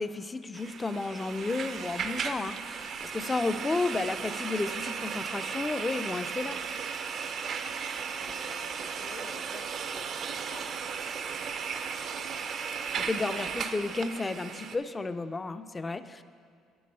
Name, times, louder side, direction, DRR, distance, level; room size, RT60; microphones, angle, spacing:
voice 1, 0.0-6.6 13.0-16.2, left 3 dB, 20° left, 11 dB, 0.3 m, -32 dB
sound 1, 0.5-14.8, right 6 dB, 50° right, 0.4 m, -36 dB
voice 2, 7.3-7.8 8.1-10.1 10.4-11.2, left 5 dB, 70° left, 3 dB, 1.0 m, -50 dB
8.5 x 6.2 x 5.4 m, 2.2 s
cardioid pair, 105°, 0 cm